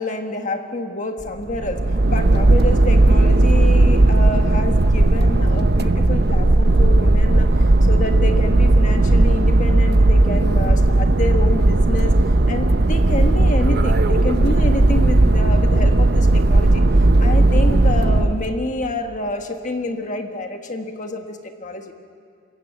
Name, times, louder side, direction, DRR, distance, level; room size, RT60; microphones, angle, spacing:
voice 1, 0.0-1.8 2.1-12.1 12.5-16.8 17.2-21.9, left 2 dB, 40° left, 5 dB, 1.5 m, -28 dB
sound 1, 1.2-18.5, right 2 dB, 50° right, 0.8 m, -15 dB
27.5 x 15.5 x 8.1 m, 2.5 s
head